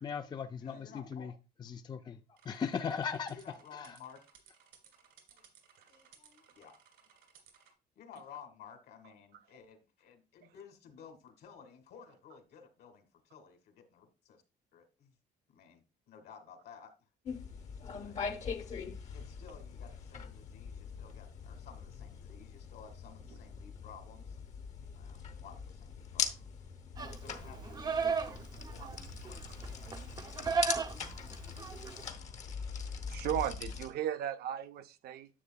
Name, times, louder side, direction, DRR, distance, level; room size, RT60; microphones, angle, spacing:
voice 1, 0.0-1.3 1.6-2.2 2.5-3.4, left 6 dB, 25° left, 0.4 m, -37 dB
voice 2, 0.6-1.3 3.2-4.2 5.3-5.4 5.9-6.7 8.0-14.4 14.7-15.1 15.5-16.9 17.9-18.2 18.4-18.9 19.1-24.4 25.0-29.6, left 7 dB, 70° left, 1.9 m, -55 dB
sound 1, 2.4-7.7, right 8 dB, 85° right, 2.3 m, -62 dB
sound 2, 17.2-33.9, left 6 dB, 45° left, 1.0 m, -42 dB
Livestock farm animals working animals, 27.0-32.1, right 5 dB, 25° right, 0.6 m, -36 dB
voice 3, 33.1-35.3, right 11 dB, 70° right, 0.6 m, -36 dB
10.0 x 6.7 x 2.3 m
cardioid pair, 110°, 17 cm